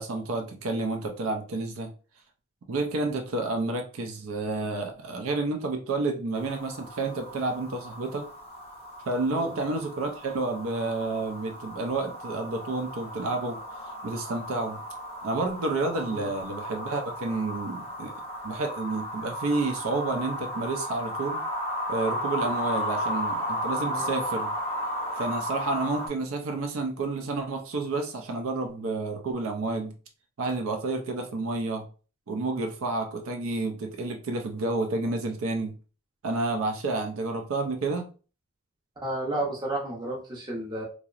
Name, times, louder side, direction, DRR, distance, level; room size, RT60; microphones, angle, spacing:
voice 1, 0.0-1.9 2.7-8.3 9.1-13.6 14.0-14.8 15.2-18.1 18.4-21.4 21.9-24.5 25.2-29.9 30.4-31.9 32.3-35.7 36.2-38.1, right 3 dB, 75° right, 4 dB, 0.4 m, -30 dB
sound 1, 6.3-26.1, equal, 25° left, 0.5 m, -34 dB
voice 2, 23.9-24.2 39.0-40.8, right 1 dB, 20° right, -2 dB, 0.6 m, -32 dB
2.7 x 2.0 x 2.4 m, 0.36 s
head